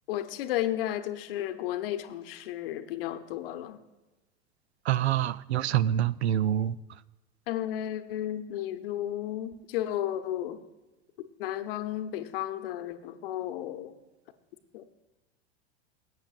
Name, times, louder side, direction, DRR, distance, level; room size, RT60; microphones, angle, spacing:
voice 1, 0.1-3.8 7.5-10.6 11.2-14.0 14.7-14.9, left 12 dB, 55° left, 0.9 m, -33 dB
voice 2, 4.9-6.8, right 11 dB, 75° right, 0.5 m, -26 dB
20.5 x 9.2 x 2.5 m
figure-of-eight pair, 85°, 33 cm